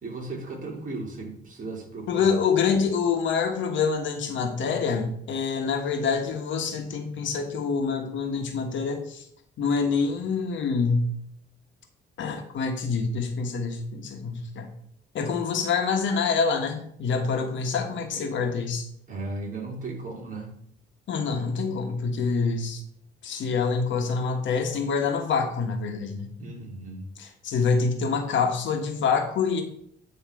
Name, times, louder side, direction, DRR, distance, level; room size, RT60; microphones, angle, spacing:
voice 1, 0.0-2.3 18.1-18.2 19.1-20.5 26.4-27.1, right 3 dB, 40° right, 0 dB, 2.2 m, -36 dB
voice 2, 2.1-9.2 9.6-11.1 12.2-14.7 15.1-18.9 21.1-22.8 23.2-26.3 27.2-29.6, left 5 dB, 70° left, 4 dB, 1.3 m, -26 dB
9.3 x 3.2 x 4.7 m, 0.69 s
cardioid pair, 90°, 20 cm